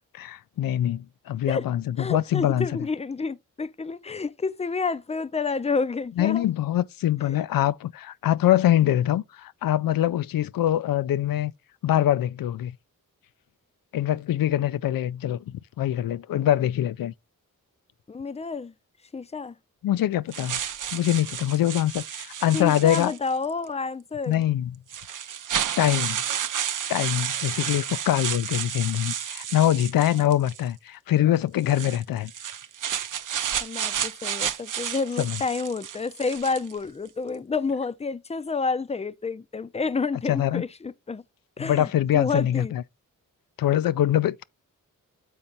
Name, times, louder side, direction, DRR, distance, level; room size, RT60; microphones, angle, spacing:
voice 1, 0.1-2.7 6.2-11.5 11.8-12.8 13.9-17.1 19.8-20.6 20.9-23.1 24.3-24.8 25.8-26.2 26.9-32.3 35.2-35.4 40.3-40.6 41.6-42.8 43.6-44.4, left 12 dB, 80° left, 0.5 m, -24 dB
voice 2, 2.0-6.5 18.1-18.7 19.1-19.6 22.5-24.4 33.6-41.2 41.6-42.7, left 4 dB, 20° left, 0.5 m, -29 dB
sound 1, 20.3-23.5 24.3-24.4 24.9-30.7 31.6-36.8, right 9 dB, 65° right, 0.6 m, -31 dB
7.3 x 4.3 x 3.9 m
cardioid pair, 55°, 34 cm